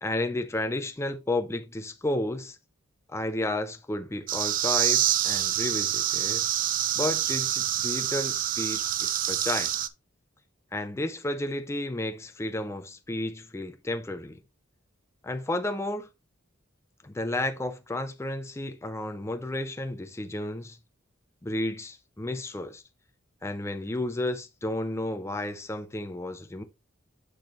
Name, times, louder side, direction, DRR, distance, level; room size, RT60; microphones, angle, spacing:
voice 1, 0.0-2.6 3.1-6.4 7.0-9.7 10.7-14.4 15.2-16.1 17.0-20.8 21.4-22.8 23.4-26.6, left 1 dB, 15° left, 0.5 m, -32 dB
sound 1, 4.3-9.9, right 11 dB, 45° right, 0.4 m, -26 dB
6.5 x 6.2 x 3.1 m
head